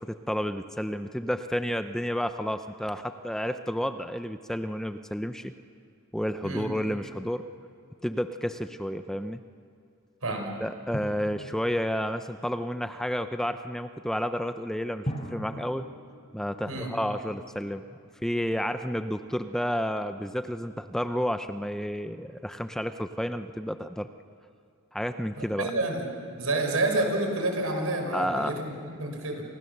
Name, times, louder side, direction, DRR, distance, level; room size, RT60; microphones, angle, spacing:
voice 1, 0.0-5.5 6.1-7.4 8.0-9.4 10.6-15.9 16.3-17.8 18.2-24.1 24.9-25.7 28.1-28.5, equal, ahead, 9 dB, 0.6 m, -31 dB
Drum, 10.9-12.4 15.1-17.2, equal, 30° left, 4.3 m, -39 dB
voice 2, 25.4-26.1 26.4-29.4, right 2 dB, 85° right, 4 dB, 5.0 m, -29 dB
30.0 x 27.0 x 6.7 m, 2.4 s
head